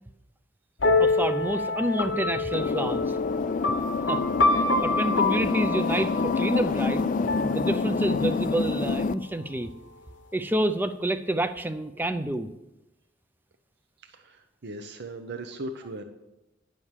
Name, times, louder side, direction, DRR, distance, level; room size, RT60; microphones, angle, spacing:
sound 1, 0.8-8.4, left 3 dB, 70° left, 0.8 m, -27 dB
voice 1, 1.0-3.2 4.1-4.2 4.5-9.7 10.3-12.5, right 1 dB, 10° right, 10 dB, 0.5 m, -28 dB
sound 2, 2.5-9.1, left 4 dB, 45° left, 0.3 m, -27 dB
voice 2, 14.0-16.0, right 2 dB, 60° right, 6 dB, 0.8 m, -38 dB
11.0 x 6.4 x 7.3 m, 0.96 s
head